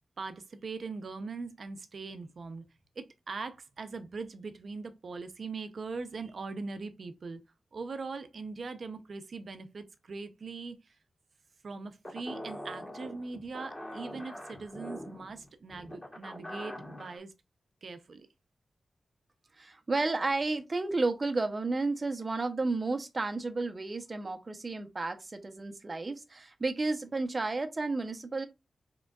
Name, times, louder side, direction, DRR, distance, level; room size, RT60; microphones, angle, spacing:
voice 1, 0.2-2.6 3.0-7.4 7.7-10.9 11.6-17.3 17.8-18.3, right 4 dB, 65° right, 0.7 m, -41 dB
sound 1, 12.0-17.2, equal, 20° left, 2.3 m, -43 dB
voice 2, 19.6-28.5, right 3 dB, 35° right, 0.9 m, -32 dB
4.8 x 3.8 x 2.4 m
wide cardioid pair, 90°, 0 cm